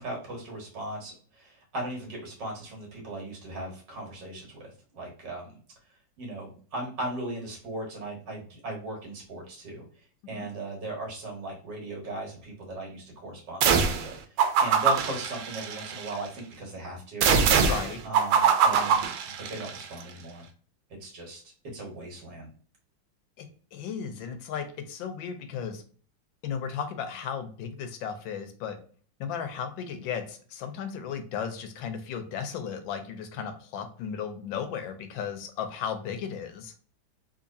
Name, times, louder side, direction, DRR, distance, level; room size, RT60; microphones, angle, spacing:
voice 1, 0.0-5.5 6.2-9.8 10.3-14.2 14.6-17.3 18.0-20.5 20.9-21.4 21.7-22.5, right 2 dB, 65° right, -1 dB, 2.0 m, -37 dB
sound 1, 13.6-14.1 14.4-16.1 17.2-19.8, right 6 dB, 85° right, 1.4 m, -23 dB
voice 2, 17.7-18.0 23.4-25.8 26.4-28.8 29.2-36.7, left 7 dB, 80° left, 8 dB, 1.3 m, -35 dB
3.8 x 2.8 x 2.6 m, 0.43 s
omnidirectional pair, 2.1 m